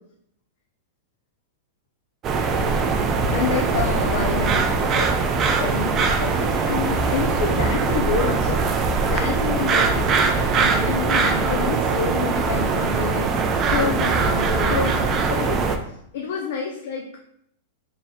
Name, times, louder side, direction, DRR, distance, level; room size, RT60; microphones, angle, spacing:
sound 1, 2.2-15.8, right 4 dB, 25° right, 0.3 m, -21 dB
voice 1, 3.3-5.2 5.5-10.1 10.4-13.4 13.7-15.6 16.1-17.2, left 5 dB, 65° left, 0 dB, 0.5 m, -28 dB
3.3 x 2.3 x 4.2 m, 0.71 s
supercardioid pair, 160°, 0 cm